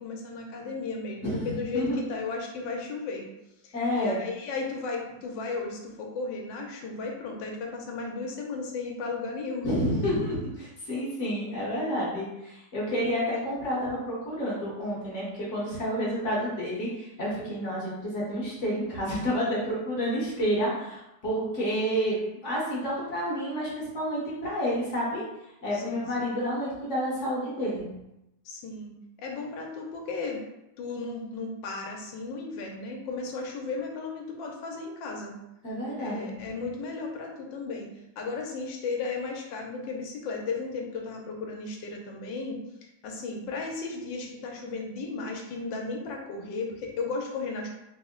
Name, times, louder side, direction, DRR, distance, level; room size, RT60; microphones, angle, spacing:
voice 1, 0.0-3.3 3.6-9.7 25.7-26.3 28.4-28.9 29.2-30.4 30.8-35.3 36.0-37.9 38.2-47.7, left 4 dB, 90° left, 1 dB, 1.3 m, -35 dB
voice 2, 3.7-4.2 9.6-22.2 22.4-25.2 25.6-27.9 35.6-36.3, equal, 50° left, -6 dB, 1.2 m, -29 dB
3.5 x 2.1 x 3.6 m, 0.90 s
omnidirectional pair, 1.9 m